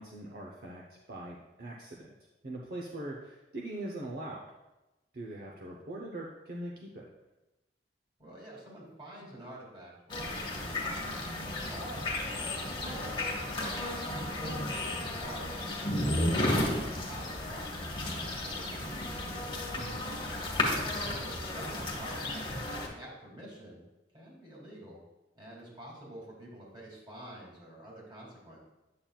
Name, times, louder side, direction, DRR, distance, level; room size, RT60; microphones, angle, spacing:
voice 1, 0.0-2.1 2.4-4.4 5.1-7.0 19.7-20.1, right 1 dB, 55° right, -2 dB, 0.8 m, -41 dB
voice 2, 8.2-11.3 11.6-19.3 20.1-23.8 24.1-25.0 25.3-28.6, right 1 dB, 25° right, -4 dB, 2.4 m, -48 dB
sound 1, 10.1-22.9, left 1 dB, 25° left, 1.2 m, -33 dB
8.6 x 7.4 x 2.3 m, 1.0 s
head